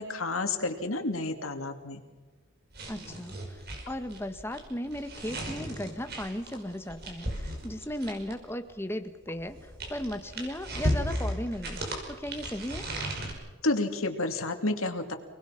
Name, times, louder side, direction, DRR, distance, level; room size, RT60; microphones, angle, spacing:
voice 1, 0.0-2.0 13.6-15.1, left 2 dB, 75° left, 6 dB, 2.6 m, -30 dB
sound 1, 2.7-8.5 9.3-13.3, right 1 dB, 45° right, 5.7 m, -35 dB
voice 2, 2.9-11.8 12.1-12.9, left 1 dB, 10° left, 8 dB, 1.3 m, -36 dB
29.0 x 20.0 x 5.9 m, 1.3 s
head